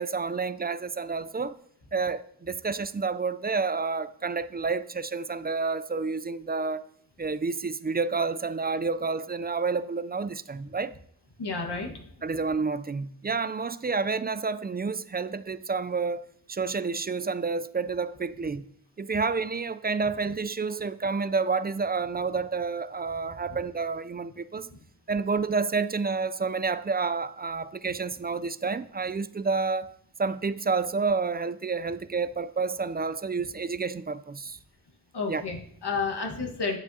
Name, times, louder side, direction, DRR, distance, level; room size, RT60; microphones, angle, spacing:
voice 1, 0.0-1.5 1.9-6.8 7.2-10.9 12.2-18.6 19.0-24.7 25.1-29.9 30.2-34.6 35.3-35.4, right 4 dB, 25° right, 0.3 m, -29 dB
voice 2, 11.4-11.9 35.1-36.8, left 4 dB, 85° left, 1.5 m, -31 dB
9.6 x 7.9 x 2.7 m
cardioid pair, 45°, 39 cm